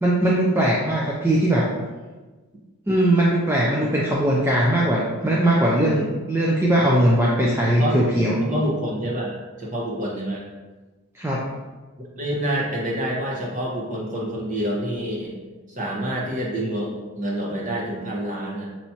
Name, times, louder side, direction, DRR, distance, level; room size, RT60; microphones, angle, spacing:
voice 1, 0.0-1.7 2.9-8.4 11.1-11.4, right 1 dB, 10° right, -4 dB, 0.4 m, -20 dB
voice 2, 7.7-8.0 8.4-9.3 9.6-10.5 12.2-15.4 15.7-18.7, right 1 dB, 35° right, -3 dB, 0.9 m, -27 dB
5.6 x 3.0 x 2.8 m, 1.3 s
head